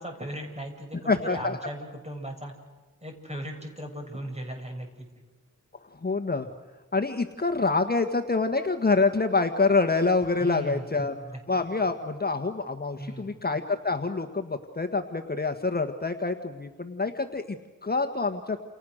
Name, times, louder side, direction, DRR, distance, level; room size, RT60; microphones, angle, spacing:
voice 1, 0.0-2.5 3.0-5.1 10.4-11.4 13.0-13.4, equal, 20° right, 3 dB, 6.9 m, -38 dB
voice 2, 1.1-1.6 6.0-6.5 6.9-11.1 11.5-17.6 17.8-18.6, left 3 dB, 30° left, 5 dB, 1.6 m, -26 dB
29.5 x 29.5 x 6.6 m, 1.3 s
wide cardioid pair, 105°, 32 cm